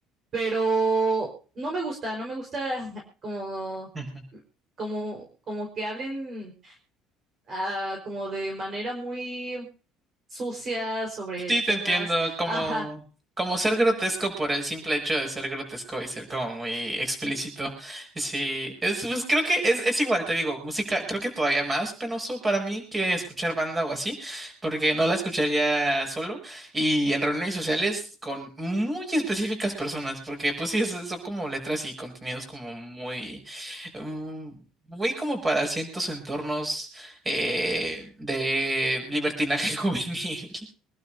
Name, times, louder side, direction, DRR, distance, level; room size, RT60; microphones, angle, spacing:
voice 1, 0.3-1.3 1.6-3.9 4.8-6.7 7.5-9.7 10.3-12.8, right 2 dB, 35° right, 1 dB, 4.6 m, -30 dB
voice 2, 11.5-13.0 13.4-34.6 34.9-40.7, right 1 dB, 15° right, 4 dB, 7.1 m, -28 dB
25.5 x 12.0 x 2.7 m, 0.39 s
cardioid pair, 150°, 0 cm